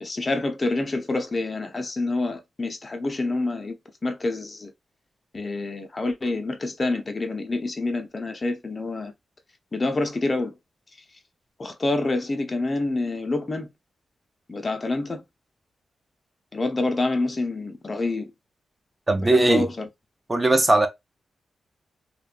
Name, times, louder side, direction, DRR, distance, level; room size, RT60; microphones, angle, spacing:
voice 1, 0.0-3.7 4.0-4.7 5.3-9.1 9.7-10.5 11.6-13.7 14.5-15.2 16.5-18.3 19.2-19.9, left 2 dB, 35° left, 0.5 m, -27 dB
voice 2, 19.1-19.7 20.3-20.9, right 2 dB, 25° right, 0.4 m, -19 dB
2.6 x 2.1 x 2.3 m
cardioid pair, 75°, 0 cm